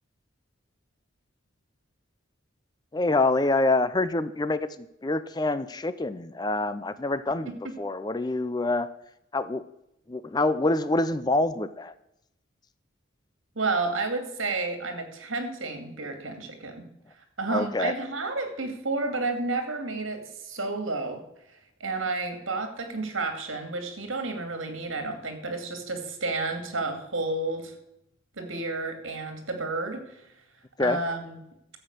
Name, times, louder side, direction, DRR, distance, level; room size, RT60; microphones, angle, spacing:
voice 1, 2.9-8.9 9.3-9.7 10.1-11.9 17.5-17.9 30.8-31.0, left 2 dB, 20° left, 14 dB, 0.4 m, -26 dB
voice 2, 13.6-16.8 17.4-21.2 21.8-27.8 28.4-30.0 30.8-31.4, right 3 dB, 75° right, 6 dB, 2.4 m, -31 dB
12.0 x 7.9 x 6.6 m, 0.81 s
head